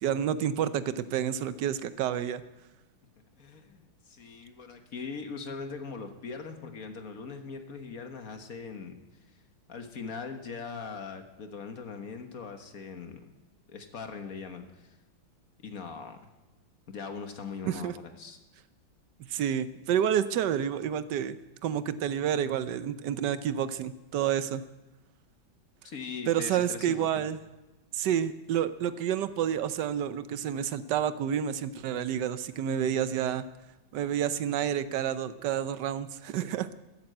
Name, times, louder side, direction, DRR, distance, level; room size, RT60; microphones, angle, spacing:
voice 1, 0.0-2.4 17.6-17.9 19.3-21.4 21.6-24.6 26.3-27.4 27.9-33.4 33.9-36.7, right 9 dB, 70° right, 13 dB, 1.2 m, -29 dB
voice 2, 3.4-9.0 9.7-13.3 13.7-15.0 15.6-16.3 16.9-18.4 25.8-27.2, left 5 dB, 50° left, 6 dB, 1.6 m, -41 dB
14.0 x 10.5 x 7.8 m, 1.1 s
omnidirectional pair, 2.1 m